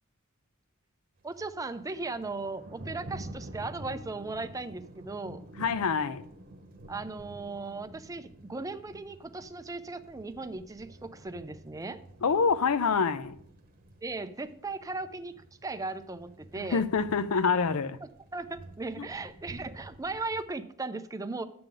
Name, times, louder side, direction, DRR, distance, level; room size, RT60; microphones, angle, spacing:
voice 1, 1.2-5.4 6.9-12.0 14.0-15.3 15.6-16.8 18.3-21.4, right 3 dB, 15° right, 0.5 m, -37 dB
Thunder, 1.2-20.4, right 1 dB, 45° right, 1.0 m, -49 dB
voice 2, 5.6-6.2 12.2-13.3 16.7-18.0 19.0-19.1, left 5 dB, 85° left, 0.5 m, -26 dB
10.0 x 7.7 x 3.9 m
head